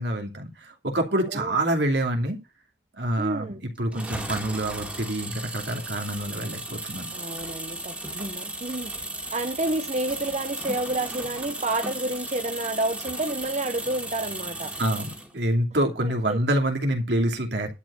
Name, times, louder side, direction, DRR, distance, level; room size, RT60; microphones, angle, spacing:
voice 1, 0.0-2.4 3.0-7.1 14.8-17.7, right 1 dB, 80° right, 2.7 m, -26 dB
voice 2, 1.1-1.6 3.2-3.6 7.1-9.1 9.3-14.7 16.3-16.4, right 2 dB, 40° right, 1.1 m, -30 dB
sound 1, 3.9-15.3, right 1 dB, 10° right, 2.3 m, -35 dB
12.0 x 4.9 x 8.2 m
head